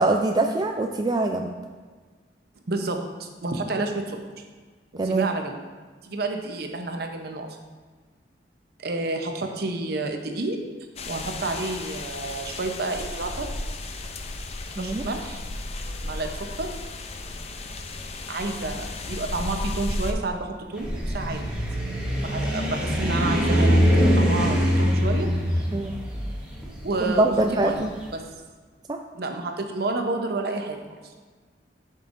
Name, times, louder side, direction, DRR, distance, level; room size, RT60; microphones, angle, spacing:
voice 1, 0.0-1.5 5.0-5.2 14.8-15.1 25.7-25.9 27.2-27.9 28.9-29.0, right 2 dB, 20° right, 3 dB, 0.3 m, -23 dB
voice 2, 2.7-4.2 5.0-5.6 6.0-7.6 8.8-10.6 11.1-13.5 14.8-15.4 16.0-16.7 18.3-20.9 21.1-21.4 22.2-25.6 26.8-27.8 28.1-28.2 29.1-30.8, right 2 dB, 60° right, 4 dB, 0.8 m, -30 dB
sound 1, 11.0-20.1, left 2 dB, 35° left, 0.5 m, -34 dB
passing bye in the distance, 20.7-27.9, equal, 5° right, 1.2 m, -23 dB
10.5 x 5.5 x 2.6 m, 1.4 s
head